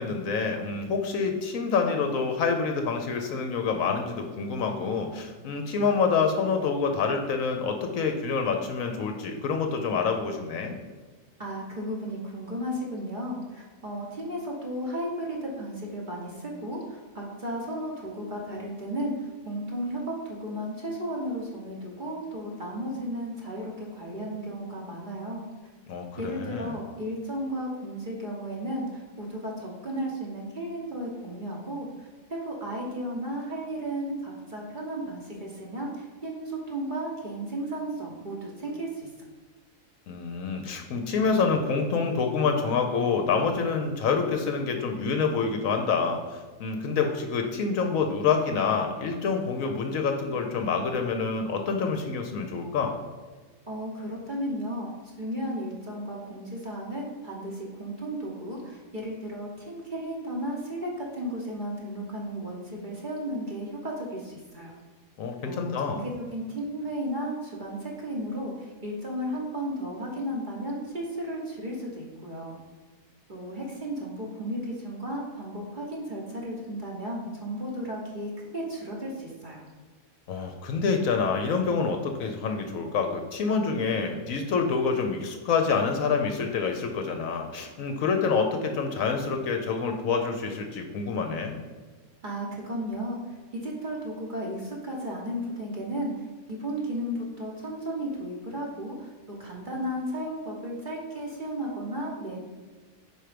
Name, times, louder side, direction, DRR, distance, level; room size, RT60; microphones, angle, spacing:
voice 1, 0.0-10.8 25.9-26.7 40.1-52.9 65.2-66.0 80.3-91.6, left 5 dB, 70° left, 4 dB, 1.0 m, -27 dB
voice 2, 11.4-25.5 26.2-39.1 53.7-54.9 55.2-64.7 65.4-72.6 73.3-79.6 92.2-102.4, right 1 dB, 35° right, -2 dB, 1.0 m, -34 dB
5.0 x 4.5 x 4.9 m, 1.4 s
omnidirectional pair, 1.6 m